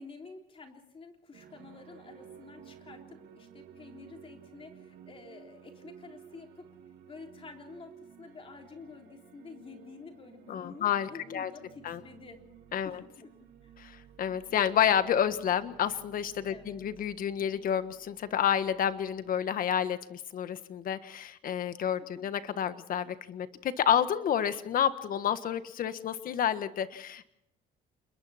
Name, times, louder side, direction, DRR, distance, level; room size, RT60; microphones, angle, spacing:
voice 1, 0.0-6.7 7.1-12.4 12.8-13.7 16.5-16.8 22.0-22.3, left 4 dB, 35° left, 3 dB, 3.6 m, -50 dB
sound 1, 1.3-19.4, right 8 dB, 65° right, 3.2 m, -54 dB
voice 2, 10.5-11.5 11.8-12.0 12.7-13.0 13.8-27.3, left 9 dB, 55° left, 11 dB, 1.5 m, -30 dB
28.5 x 21.5 x 4.3 m, 0.79 s
cardioid pair, 110°, 17 cm